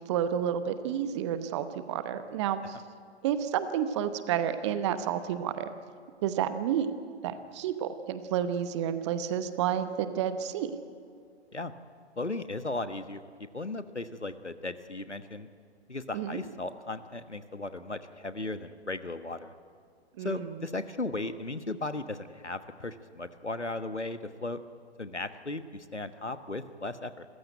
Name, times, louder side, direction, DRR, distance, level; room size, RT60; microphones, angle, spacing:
voice 1, 0.1-2.8 3.2-5.7 6.2-6.9 7.2-10.7 16.1-16.4 20.2-20.5, right 9 dB, 25° right, 11 dB, 1.0 m, -30 dB
voice 2, 12.2-13.2 13.5-15.5 15.9-19.5 20.2-24.6 25.0-27.3, left 2 dB, 90° left, 11 dB, 1.3 m, -36 dB
27.0 x 15.0 x 9.2 m, 2.2 s
figure-of-eight pair, 125°, 34 cm